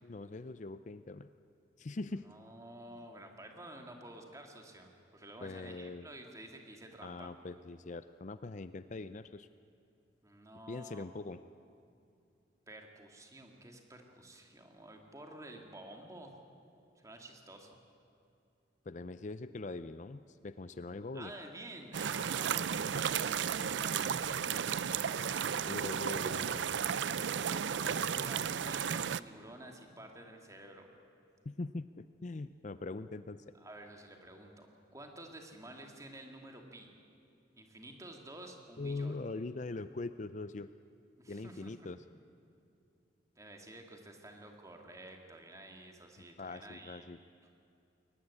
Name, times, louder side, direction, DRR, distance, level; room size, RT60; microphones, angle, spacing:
voice 1, 0.0-1.3 1.8-2.3 2.9-3.0 5.4-6.1 7.0-9.5 10.7-11.4 18.9-21.3 25.6-27.0 31.5-33.4 38.8-40.7 41.3-42.0 46.4-47.2, left 3 dB, 40° left, 12 dB, 0.5 m, -42 dB
voice 2, 2.1-7.3 10.2-11.1 12.7-16.3 17.0-17.8 21.1-25.6 27.3-30.9 33.5-34.7 34.9-36.9 37.6-39.1 41.2-41.7 43.4-47.1 47.4-47.5, right 1 dB, 20° right, 3 dB, 2.4 m, -51 dB
sound 1, 21.9-29.2, right 8 dB, 85° right, 0.5 m, -34 dB
22.0 x 19.0 x 9.8 m, 2.6 s
head